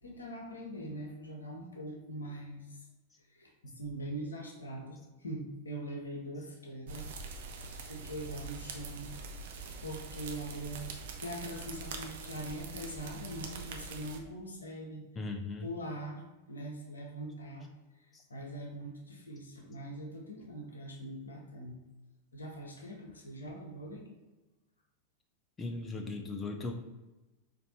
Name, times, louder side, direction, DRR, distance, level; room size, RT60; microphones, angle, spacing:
voice 1, 0.0-2.9 3.2-7.1 7.4-9.1 9.6-10.9 11.2-15.0 15.6-21.8 22.3-24.1, right 1 dB, 75° left, 1 dB, 0.8 m, -42 dB
sound 1, 6.9-14.2, right 4 dB, 55° right, 0.5 m, -43 dB
voice 2, 15.2-15.7 18.1-18.2 25.6-26.7, left 3 dB, 15° left, 4 dB, 0.4 m, -38 dB
4.3 x 2.6 x 4.0 m, 1.1 s
figure-of-eight pair, 90°, 0 cm